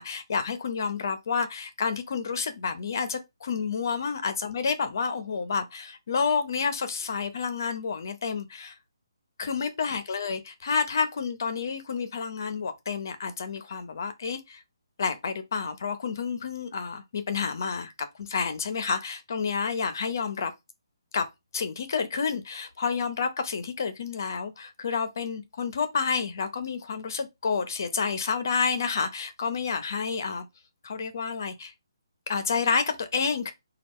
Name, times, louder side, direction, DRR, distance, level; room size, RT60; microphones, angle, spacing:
voice 1, 0.0-8.7 9.4-14.6 15.0-17.9 18.2-20.5 21.1-21.3 21.5-30.5 30.8-31.7 32.3-33.5, left 5 dB, 45° left, 0.6 m, -29 dB
4.1 x 2.3 x 3.6 m
hypercardioid pair, 170°, 2 cm